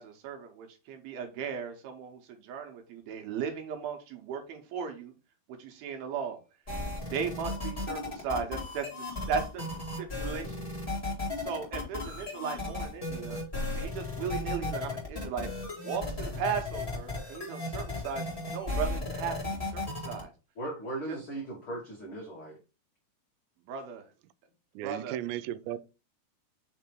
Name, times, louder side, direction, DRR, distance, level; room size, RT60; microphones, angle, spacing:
voice 1, 0.0-5.1 5.6-6.4 7.1-9.7 10.0-10.6 11.4-13.4 13.7-15.5 15.8-18.3 18.5-20.3 21.1-21.2 23.7-24.1 24.8-25.2, right 6 dB, 70° right, 2.6 m, -36 dB
sound 1, 6.7-20.2, left 2 dB, 25° left, 0.8 m, -35 dB
voice 2, 20.6-22.6, right 2 dB, 90° left, 1.1 m, -38 dB
voice 3, 24.8-25.8, right 12 dB, 90° right, 2.8 m, -35 dB
6.2 x 3.4 x 4.5 m
omnidirectional pair, 5.0 m